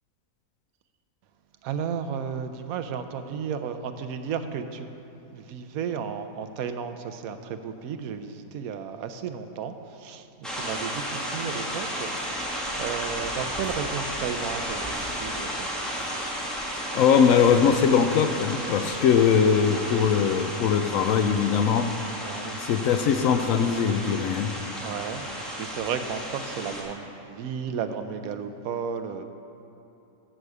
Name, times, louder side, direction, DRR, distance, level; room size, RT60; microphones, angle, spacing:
voice 1, 1.6-4.9 5.3-15.9 22.2-22.6 24.8-25.3 25.5-29.2, right 7 dB, 80° right, 8 dB, 1.1 m, -33 dB
sound 1, 10.4-26.8, equal, ahead, 1.5 m, -33 dB
voice 2, 16.9-21.9 22.6-24.5, left 7 dB, 70° left, 8 dB, 0.9 m, -21 dB
14.0 x 4.9 x 6.7 m, 3.0 s
omnidirectional pair, 1.5 m